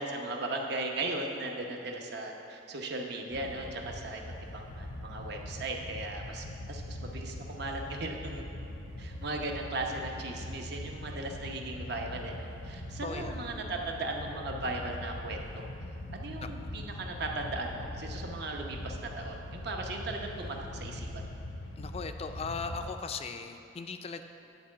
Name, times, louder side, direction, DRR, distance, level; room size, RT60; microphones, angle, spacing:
voice 1, 0.0-4.2 4.5-8.4 9.0-15.7 16.1-21.2, right 2 dB, 60° right, 2 dB, 0.9 m, -37 dB
sound 1, 3.3-22.9, left 1 dB, 90° left, 0.8 m, -42 dB
voice 2, 13.0-13.5 16.4-16.5 21.8-24.2, left 4 dB, 30° left, 8 dB, 0.4 m, -38 dB
10.0 x 4.6 x 7.2 m, 2.7 s
head